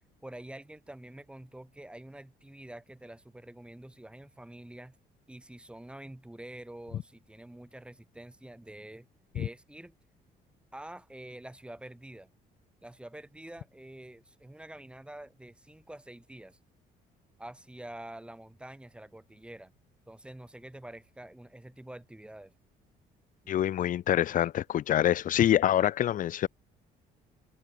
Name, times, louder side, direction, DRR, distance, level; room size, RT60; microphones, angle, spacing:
voice 1, 0.2-5.0 5.3-9.1 9.3-9.9 10.7-12.3 12.8-16.6 17.4-19.7 20.1-22.5, right 1 dB, 5° right, 6.3 m, -47 dB
voice 2, 23.5-26.5, left 11 dB, 50° left, 0.8 m, -26 dB
open air
cardioid pair, 110°, 17 cm